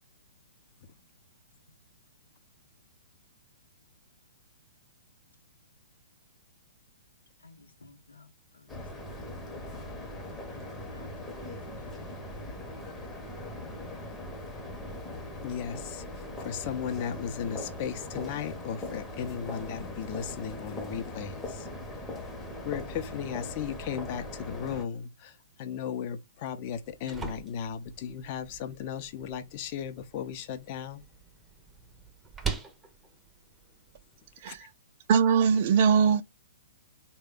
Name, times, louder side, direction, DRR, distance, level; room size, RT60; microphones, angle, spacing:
voice 1, 7.4-9.3 9.6-12.5, left 2 dB, 85° left, 0.8 m, -56 dB
sound 1, 8.7-24.8, left 1 dB, 10° left, 0.8 m, -40 dB
voice 2, 15.4-21.7 22.6-31.0 34.5-34.6, left 8 dB, 40° left, 0.6 m, -36 dB
sound 2, 26.6-34.6, right 6 dB, 10° right, 0.7 m, -43 dB
voice 3, 35.1-36.2, right 6 dB, 50° right, 0.4 m, -21 dB
3.3 x 2.2 x 3.6 m
hypercardioid pair, 125°, 0 cm